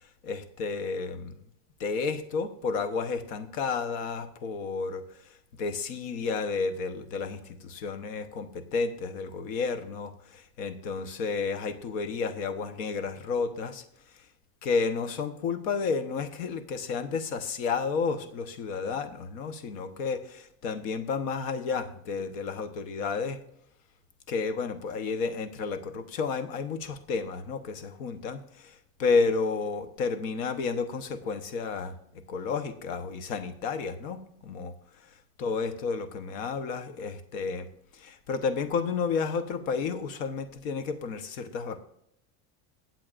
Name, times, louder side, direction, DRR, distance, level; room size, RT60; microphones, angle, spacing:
voice 1, 0.2-1.3 1.8-13.8 14.6-23.4 24.3-31.9 32.3-34.7 35.4-37.7 37.9-41.8, left 5 dB, 90° left, 10 dB, 1.2 m, -31 dB
21.5 x 7.6 x 2.5 m, 0.74 s
supercardioid pair, 125°, 40 cm